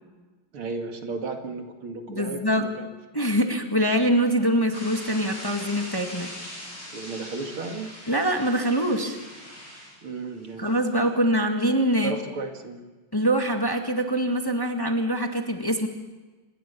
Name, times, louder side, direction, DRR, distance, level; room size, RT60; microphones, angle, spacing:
voice 1, 0.5-2.9 6.9-7.9 10.0-10.7 11.2-11.3 12.0-12.9, right 3 dB, 80° right, 4 dB, 3.1 m, -34 dB
voice 2, 2.1-2.7 3.1-6.3 8.1-9.2 10.6-12.1 13.1-15.9, equal, 10° left, 3 dB, 1.8 m, -24 dB
sound 1, 4.7-11.1, equal, 30° left, 7.8 m, -41 dB
26.0 x 21.0 x 7.0 m, 1.3 s
omnidirectional pair, 2.3 m